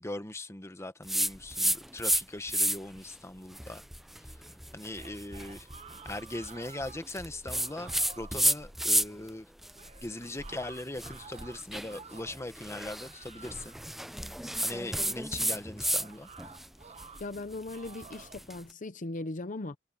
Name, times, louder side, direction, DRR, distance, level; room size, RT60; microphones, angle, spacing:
voice 1, 0.0-3.8 4.2-4.4 4.7-5.7 6.0-9.5 10.0-13.8 14.6-16.3, left 2 dB, 15° left, 1.0 m, -40 dB
sound 1, 1.1-2.2 2.5-3.0 3.5-9.3 9.6-16.1 16.4-18.6, right 1 dB, ahead, 0.4 m, -32 dB
sound 2, 4.7-7.1 7.5-8.4 9.8-12.5 12.9-13.9 15.8-17.2 17.7-18.4, right 5 dB, 35° right, 1.0 m, -52 dB
voice 2, 17.2-19.8, left 2 dB, 40° left, 0.8 m, -38 dB
head